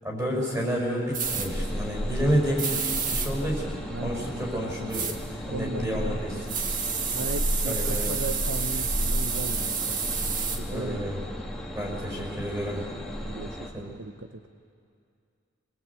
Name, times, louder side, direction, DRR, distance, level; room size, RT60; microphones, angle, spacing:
voice 1, 0.0-2.7 3.1-5.1 5.5-6.5 7.6-8.2 10.6-11.2 11.7-12.8 13.7-13.9, equal, 15° right, -1 dB, 5.3 m, -30 dB
Household - Aerosol -Can - Spray, 1.1-1.5 2.6-3.3 4.9-5.2 6.5-10.6, right 6 dB, 40° right, 1.7 m, -30 dB
sound 1, 1.2-13.7, equal, ahead, 1.9 m, -33 dB
voice 2, 3.9-4.2 5.5-6.2 7.1-10.0 10.5-11.0 13.2-14.3, right 2 dB, 65° right, 7 dB, 0.8 m, -36 dB
24.5 x 20.0 x 8.4 m, 2.4 s
head